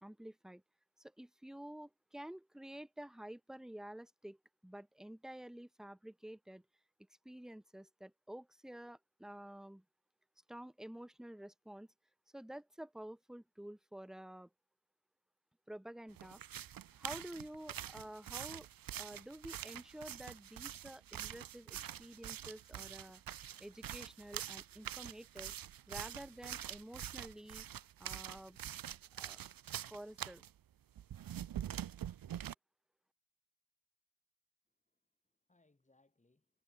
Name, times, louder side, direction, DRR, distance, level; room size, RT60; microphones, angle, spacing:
voice 1, 0.0-0.6 1.0-4.4 4.6-6.6 7.2-9.8 10.5-11.9 12.3-14.5 15.7-16.4 16.9-23.2 23.6-25.6 25.9-27.7 28.0-28.6 29.2-29.4 29.9-30.4, right 1 dB, ahead, 0.8 m, -50 dB
sound 1, 16.2-30.5 31.0-32.5, right 10 dB, 70° right, 0.9 m, -45 dB
voice 2, 34.7-36.6, left 2 dB, 20° left, 7.3 m, -75 dB
cardioid pair, 90°, 35 cm